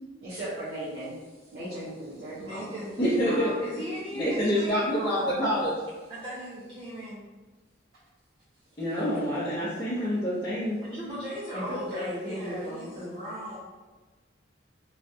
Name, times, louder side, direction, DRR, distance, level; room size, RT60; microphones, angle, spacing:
voice 1, 0.2-1.1 1.5-2.8 8.9-9.0 11.5-13.1, equal, 55° right, -11 dB, 0.9 m, -36 dB
voice 2, 2.4-5.3 6.1-7.2 10.8-13.6, equal, 25° right, -9 dB, 0.5 m, -37 dB
voice 3, 3.0-3.5 4.1-5.7 8.8-10.8, equal, 25° left, -12 dB, 0.7 m, -27 dB
3.1 x 2.3 x 2.7 m, 1.2 s
head